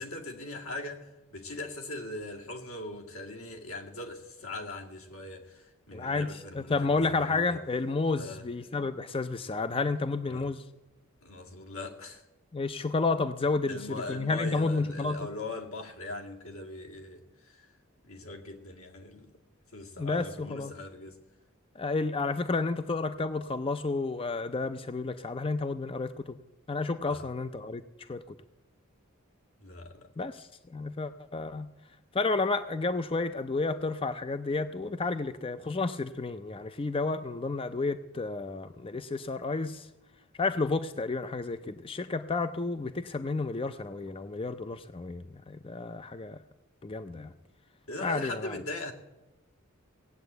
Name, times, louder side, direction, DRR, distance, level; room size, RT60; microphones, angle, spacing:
voice 1, 0.0-7.6 8.2-8.5 10.3-10.5 11.2-12.2 13.7-17.7 18.0-19.3 19.7-21.2 27.1-27.2 29.6-30.1 47.1-47.2 47.9-48.9, left 2 dB, 80° left, 2.1 m, -40 dB
voice 2, 5.9-6.3 6.5-10.6 12.5-15.3 20.0-20.7 21.8-26.4 26.7-27.8 28.1-28.4 30.2-31.7 32.1-39.9 40.4-46.4 46.8-47.3 48.0-48.6, left 3 dB, 25° left, 0.4 m, -31 dB
18.0 x 8.6 x 8.0 m
head